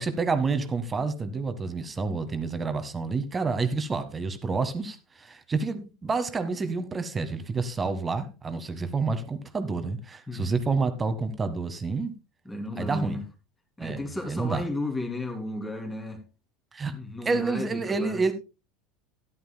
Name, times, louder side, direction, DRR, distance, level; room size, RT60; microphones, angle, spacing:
voice 1, 0.0-12.1 12.8-13.2 13.8-14.6 16.7-16.9 17.2-18.3, right 4 dB, 20° right, 1.5 m, -29 dB
voice 2, 12.4-13.2 13.8-16.2 16.9-18.2, left 2 dB, 10° left, 2.8 m, -34 dB
14.0 x 11.0 x 2.2 m
figure-of-eight pair, 75°, 0 cm